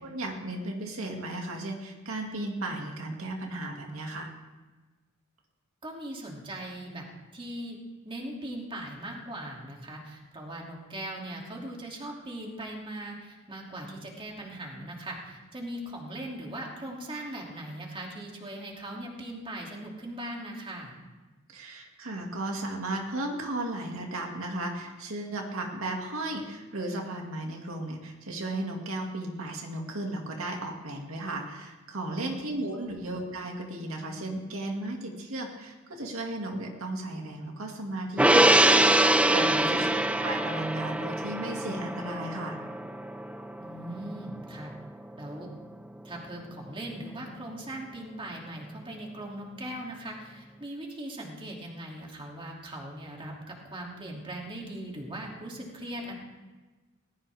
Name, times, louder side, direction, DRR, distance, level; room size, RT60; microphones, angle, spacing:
voice 1, 0.0-4.3 21.5-42.6, right 1 dB, 90° right, 1 dB, 2.3 m, -35 dB
voice 2, 5.8-7.0 7.3-7.8 8.0-21.0 32.1-32.4 32.8-33.0 39.5-39.9 43.6-44.7 45.2-45.5 46.0-56.1, right 1 dB, 25° right, -1 dB, 2.8 m, -39 dB
Gong, 38.2-44.8 45.1-45.3, right 1 dB, 5° right, 0.5 m, -24 dB
19.0 x 17.0 x 3.5 m, 1.3 s
head